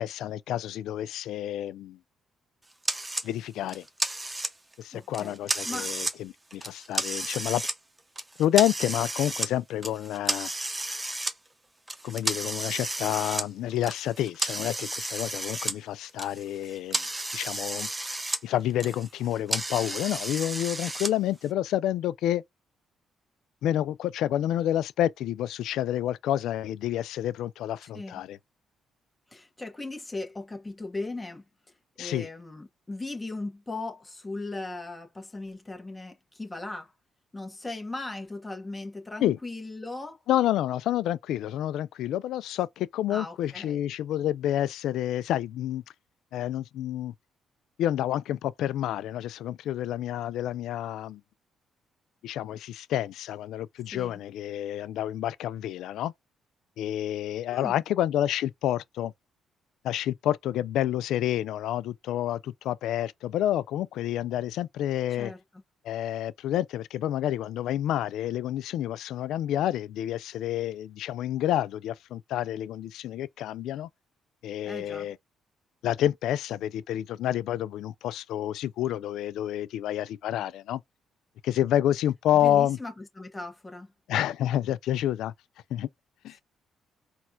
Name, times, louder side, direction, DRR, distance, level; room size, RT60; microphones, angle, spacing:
voice 1, 0.0-2.0 3.2-3.8 4.8-7.7 8.4-10.5 12.0-17.0 17.3-17.9 18.4-22.4 23.6-28.4 32.0-32.3 39.2-39.4 40.3-45.8 46.3-47.1 47.8-51.2 52.2-56.1 56.8-59.1 59.8-65.3 65.8-73.9 74.4-75.2 75.8-80.8 81.4-82.8 84.1-85.3 85.7-85.9 86.2-86.4, left 12 dB, 85° left, 0.3 m, -29 dB
sound 1, 2.8-3.3 3.7-4.7 5.1-6.2 6.5-7.8 8.2-9.5 9.8-11.3 11.9-15.8 16.1-18.4 18.7-21.1, right 2 dB, 15° right, 0.8 m, -32 dB
voice 2, 4.9-5.9 27.8-28.2 29.3-31.4 32.0-36.9 37.3-40.2 43.1-43.8 53.9-54.2 57.5-57.8 65.2-65.6 74.6-75.1 82.3-83.9, left 2 dB, 15° left, 1.1 m, -38 dB
4.2 x 2.3 x 2.6 m
cardioid pair, 90°, 0 cm